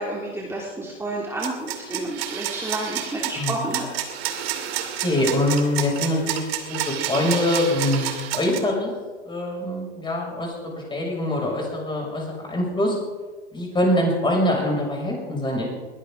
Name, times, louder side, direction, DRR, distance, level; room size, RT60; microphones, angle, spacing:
voice 1, 0.0-3.9, right 1 dB, 5° right, -3 dB, 2.7 m, -30 dB
sound 1, 1.4-8.6, right 11 dB, 55° right, 2.5 m, -29 dB
voice 2, 3.3-3.7 5.0-8.1 8.3-8.9 9.3-13.0 13.5-15.7, left 1 dB, 15° left, -1 dB, 6.4 m, -24 dB
21.5 x 17.0 x 3.8 m, 1.3 s
hypercardioid pair, 105°, 36 cm